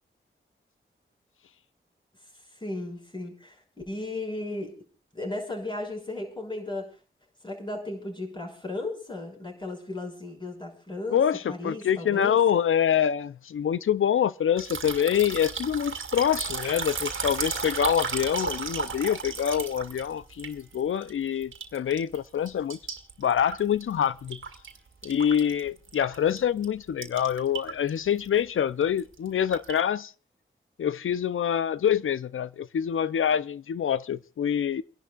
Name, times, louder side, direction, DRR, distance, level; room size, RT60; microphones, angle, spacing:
voice 1, 2.5-4.8 5.1-7.0 7.4-11.2 11.5-12.4, left 2 dB, 20° left, 6.0 m, -35 dB
voice 2, 11.1-22.8 23.2-24.4 25.0-30.1 30.8-34.8, left 9 dB, 80° left, 0.5 m, -26 dB
sound 1, 14.6-21.1 21.4-22.2 22.5-24.8 25.0-26.4 26.6-26.7 27.0-27.9 28.2-28.4 28.8-29.8, right 5 dB, 75° right, 2.0 m, -34 dB
29.5 x 11.0 x 2.4 m
cardioid pair, 65°, 21 cm